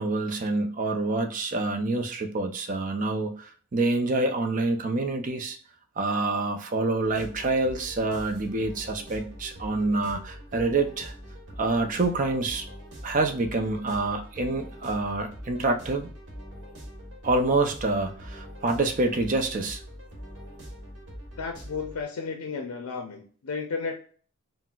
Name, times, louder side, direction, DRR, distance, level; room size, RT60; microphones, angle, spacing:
voice 1, 0.0-5.6 6.0-11.1 11.6-12.6 13.0-16.1 17.2-19.8, right 2 dB, 35° right, 5 dB, 0.4 m, -27 dB
sound 1, 7.0-22.1, equal, 55° right, 1.0 m, -43 dB
voice 2, 21.4-23.9, left 5 dB, 85° left, 4 dB, 0.5 m, -33 dB
4.1 x 2.1 x 2.3 m, 0.43 s
head